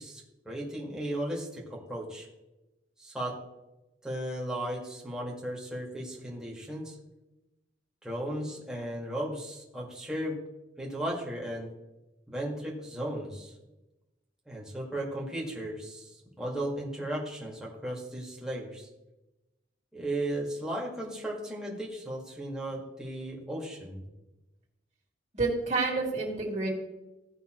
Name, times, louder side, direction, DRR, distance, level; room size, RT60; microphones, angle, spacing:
voice 1, 0.0-2.3 3.0-3.3 4.0-7.0 8.0-10.4 10.8-11.7 12.3-13.5 14.5-18.9 19.9-24.1, right 1 dB, 5° right, -4 dB, 1.8 m, -35 dB
voice 2, 25.3-26.7, right 3 dB, 40° right, -2 dB, 2.3 m, -29 dB
16.0 x 5.6 x 3.0 m, 1.0 s
head